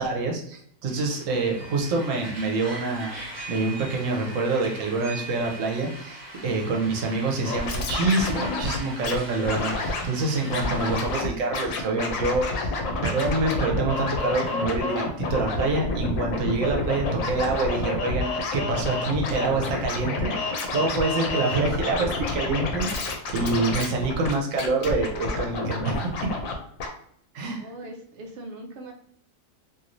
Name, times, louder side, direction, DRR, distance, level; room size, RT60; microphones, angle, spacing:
voice 1, 0.0-3.2 3.5-12.8 13.0-26.1 27.3-27.6, right 3 dB, 75° right, 0 dB, 1.1 m, -26 dB
sound 1, 0.9-11.2, right 1 dB, 40° right, 1.2 m, -40 dB
Scratching (performance technique), 7.4-9.2 9.4-10.0 10.5-11.3 11.5-26.5 26.8-26.9, left 3 dB, 85° left, 1.0 m, -29 dB
voice 2, 27.6-28.9, right 1 dB, 60° right, 2 dB, 0.6 m, -41 dB
3.0 x 2.6 x 2.6 m, 0.67 s
omnidirectional pair, 1.4 m